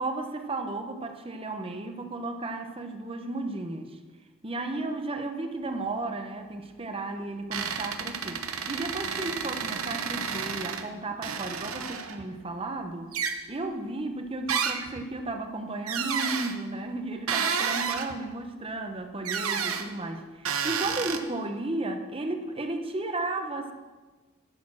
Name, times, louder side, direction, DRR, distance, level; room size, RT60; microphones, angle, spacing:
voice 1, 0.0-4.0 4.4-13.1 13.5-23.7, right 2 dB, 25° right, 6 dB, 0.8 m, -34 dB
sound 1, 7.5-10.8 11.2-12.2 13.1-13.4 14.5-15.0 15.9-16.5 17.3-18.2 19.2-19.9 20.4-21.2, right 6 dB, 90° right, 0.9 m, -31 dB
11.5 x 6.8 x 6.1 m, 1.3 s
head